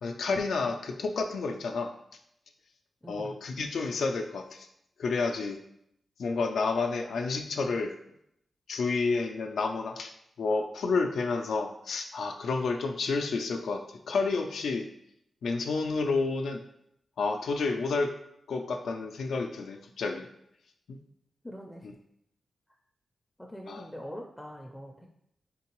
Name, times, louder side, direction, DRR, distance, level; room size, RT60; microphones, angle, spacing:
voice 1, 0.0-1.9 3.1-4.7 5.0-5.6 6.2-7.9 8.7-10.1 10.4-14.9 15.4-16.6 17.2-18.1 18.5-20.3 20.9-21.0 23.7-23.8, left 4 dB, 85° left, 4 dB, 0.3 m, -30 dB
voice 2, 3.0-3.4 21.4-21.9 22.7-22.8 23.4-25.1, equal, 5° left, 1 dB, 0.4 m, -43 dB
3.8 x 3.6 x 2.9 m, 0.76 s
wide cardioid pair, 105°, 0 cm